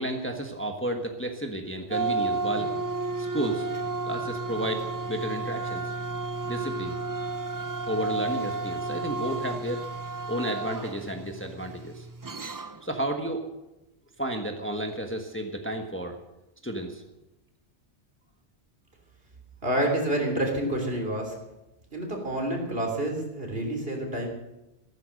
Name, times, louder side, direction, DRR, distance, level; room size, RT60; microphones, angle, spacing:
voice 1, 0.0-2.7 3.2-3.7 4.1-5.8 6.4-7.0 7.9-9.8 10.3-12.1 12.8-13.4 14.2-16.1 16.6-17.0, right 1 dB, 10° left, 3 dB, 1.3 m, -32 dB
sound 1, 1.9-12.9, right 3 dB, 30° right, 0.4 m, -32 dB
voice 2, 19.6-21.3 21.9-24.3, right 1 dB, 60° right, 1 dB, 3.5 m, -28 dB
14.5 x 13.5 x 6.4 m, 0.96 s
omnidirectional pair, 1.1 m